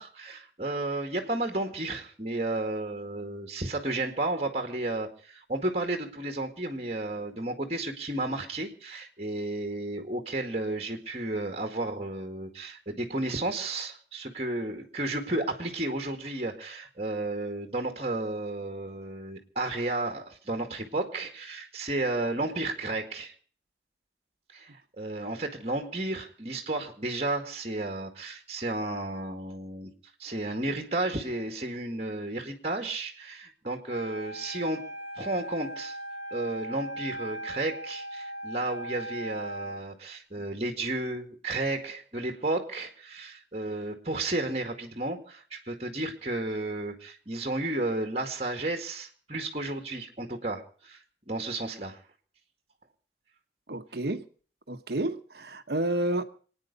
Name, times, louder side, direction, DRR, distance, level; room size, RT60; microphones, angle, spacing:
voice 1, 0.0-23.3 24.5-24.7 25.0-29.9 30.2-34.9 35.2-36.0 36.3-51.0 51.3-52.0, right 2 dB, 35° right, 2.0 m, -32 dB
Wind instrument woodwind instrument, 33.9-39.9, right 1 dB, 55° left, 6.8 m, -39 dB
voice 2, 53.7-54.2 54.7-56.2, right 1 dB, 65° right, 1.1 m, -30 dB
26.0 x 9.5 x 5.4 m
head